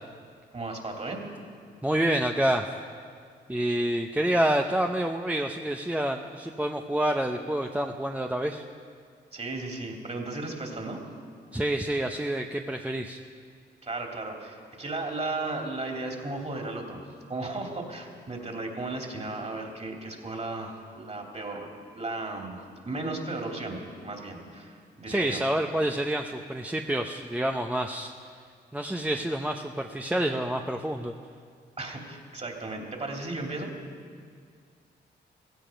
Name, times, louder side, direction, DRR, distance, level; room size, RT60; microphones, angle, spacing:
voice 1, 0.5-1.2 9.3-11.0 13.8-17.0 17.3-21.7 21.9-25.4 31.8-33.7, right 2 dB, 35° right, 1 dB, 3.0 m, -35 dB
voice 2, 1.8-2.7 3.5-8.6 11.5-13.2 25.1-28.1 28.7-31.1, right 1 dB, 5° right, 3 dB, 0.8 m, -28 dB
16.0 x 15.5 x 5.2 m, 2.1 s
supercardioid pair, 60°, 19 cm